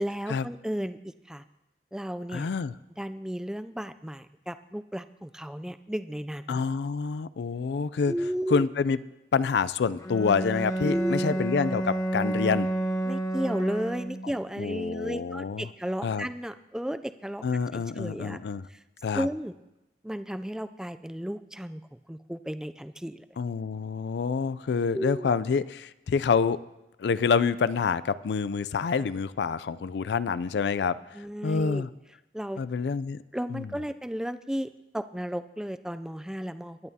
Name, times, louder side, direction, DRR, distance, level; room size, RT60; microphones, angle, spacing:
voice 1, 0.0-1.4 1.9-2.5 3.0-6.6 8.1-8.7 10.8-11.4 13.0-17.4 17.7-18.4 19.1-19.5 20.0-23.3 24.9-25.3 31.1-31.9 32.3-32.6 33.3-36.8, equal, 5° right, 11 dB, 0.3 m, -34 dB
voice 2, 2.3-2.7 6.5-8.1 8.5-9.0 9.3-12.7 14.6-15.7 16.0-16.3 17.4-18.7 19.0-19.3 23.4-26.6 27.0-31.0 31.4-31.9 32.6-33.2 33.5-33.7, left 5 dB, 70° left, 17 dB, 0.4 m, -27 dB
Bowed string instrument, 10.0-14.4, right 1 dB, 20° left, 1.0 m, -30 dB
21.0 x 11.0 x 2.8 m, 0.96 s
head